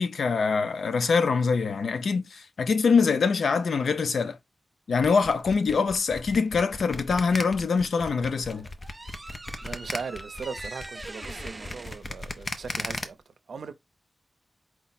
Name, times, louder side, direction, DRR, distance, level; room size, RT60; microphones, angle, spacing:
voice 1, 0.0-4.4 4.9-8.7, left 5 dB, 85° left, 0.5 m, -24 dB
sound 1, 5.0-13.0, left 2 dB, 35° left, 0.6 m, -36 dB
sound 2, 8.1-13.2, right 2 dB, 25° right, 0.4 m, -43 dB
voice 2, 9.6-13.2 13.5-13.7, right 5 dB, 85° right, 0.6 m, -38 dB
4.6 x 2.1 x 4.1 m
wide cardioid pair, 140°, 0 cm